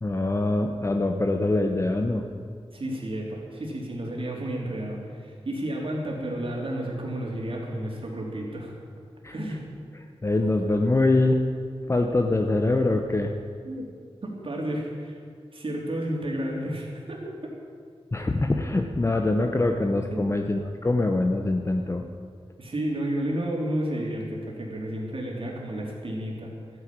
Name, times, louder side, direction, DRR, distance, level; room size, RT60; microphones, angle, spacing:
voice 1, 0.0-2.2 9.2-9.3 10.2-11.4 11.9-13.3 18.1-22.0, left 2 dB, 25° left, 4 dB, 0.8 m, -24 dB
voice 2, 2.7-8.7 9.3-9.6 13.6-13.9 14.2-15.2 15.5-17.5 20.1-20.4 22.6-26.5, right 1 dB, 60° right, -1 dB, 3.4 m, -31 dB
13.5 x 9.7 x 8.7 m, 2.1 s
wide cardioid pair, 100°, 11 cm